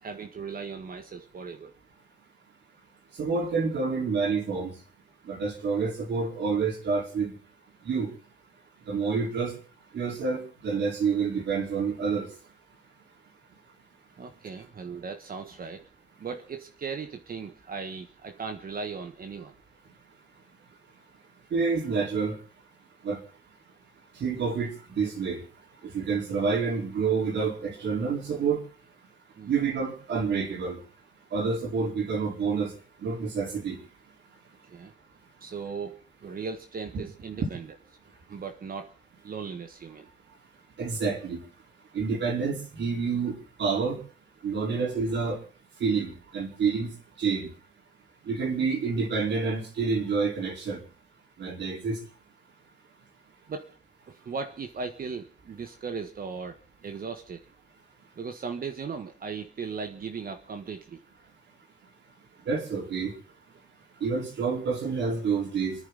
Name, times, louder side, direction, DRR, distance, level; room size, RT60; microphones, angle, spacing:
voice 1, 0.0-1.7 14.2-15.9 16.2-19.5 29.4-29.5 34.7-34.9 35.4-37.7 38.3-38.9 39.2-40.1 53.5-53.7 54.1-57.4 58.1-61.0, right 5 dB, 50° right, 6 dB, 1.5 m, -37 dB
voice 2, 3.2-4.7 5.3-7.3 7.8-8.1 8.9-9.5 9.9-12.3 21.5-22.3 23.0-23.2 24.2-25.4 25.8-28.6 29.5-30.8 31.3-32.7 33.0-33.8 36.9-37.0 37.3-37.5 40.8-41.4 41.9-44.0 44.4-45.4 45.8-46.9 47.2-47.5 48.2-50.8 51.4-52.0 62.5-63.1 64.0-65.8, right 5 dB, 80° right, 1 dB, 4.6 m, -28 dB
29.5 x 10.0 x 4.1 m, 0.39 s
cardioid pair, 110°, 18 cm